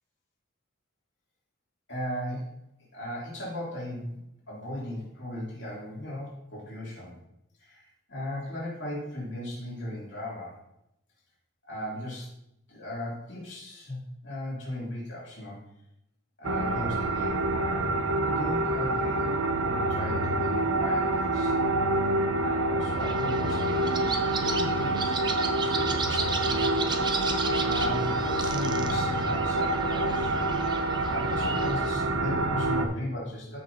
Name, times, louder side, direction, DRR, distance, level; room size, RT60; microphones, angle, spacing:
voice 1, 1.9-2.6 2.9-4.2 4.5-7.2 7.6-10.6 11.7-12.3 12.7-15.6 16.4-17.9 18.3-19.4 19.6-21.5 22.4-25.1 25.6-26.7 27.6-30.3 31.1-33.6, left 1 dB, 55° left, -6 dB, 3.0 m, -37 dB
sound 1, 16.4-32.9, right 2 dB, 75° right, 0.8 m, -27 dB
sound 2, 23.0-31.9, right 4 dB, 20° right, 0.5 m, -35 dB
13.5 x 5.4 x 2.9 m, 0.81 s
head